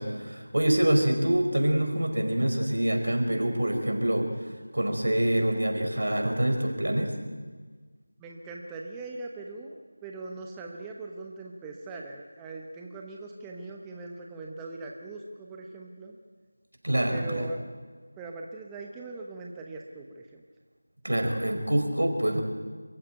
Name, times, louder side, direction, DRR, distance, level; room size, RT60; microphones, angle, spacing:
voice 1, 0.0-7.1 16.8-17.5 21.0-22.4, right 1 dB, 80° right, 5 dB, 4.8 m, -26 dB
voice 2, 8.2-16.2 17.1-17.6 18.2-20.4, right 3 dB, 10° right, 1 dB, 1.0 m, -40 dB
26.5 x 15.5 x 9.2 m, 1.4 s
figure-of-eight pair, 175°, 0 cm